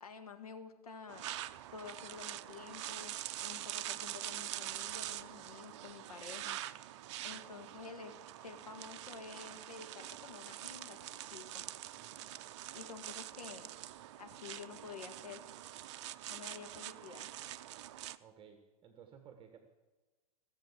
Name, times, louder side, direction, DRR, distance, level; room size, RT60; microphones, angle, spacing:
voice 1, 0.0-1.4 1.7-6.6 7.2-11.6 12.7-13.7 14.2-15.4 16.3-17.3, left 5 dB, 75° left, 5 dB, 1.8 m, -50 dB
sound 1, 1.1-18.2, right 13 dB, 50° right, 0.5 m, -45 dB
voice 2, 12.0-12.3 18.2-19.6, right 8 dB, 25° right, 6 dB, 1.3 m, -57 dB
16.0 x 7.4 x 8.2 m, 1.3 s
figure-of-eight pair, 100°, 19 cm